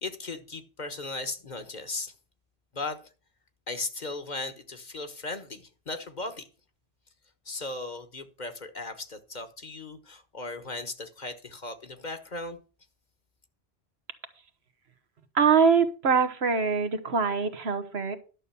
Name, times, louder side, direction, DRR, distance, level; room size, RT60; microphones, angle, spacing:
voice 1, 0.0-2.1 2.7-3.0 3.7-6.5 7.4-12.6, left 3 dB, 45° left, 1.4 m, -37 dB
voice 2, 15.3-18.2, right 5 dB, 90° right, 1.5 m, -23 dB
11.5 x 6.9 x 5.7 m
omnidirectional pair, 1.0 m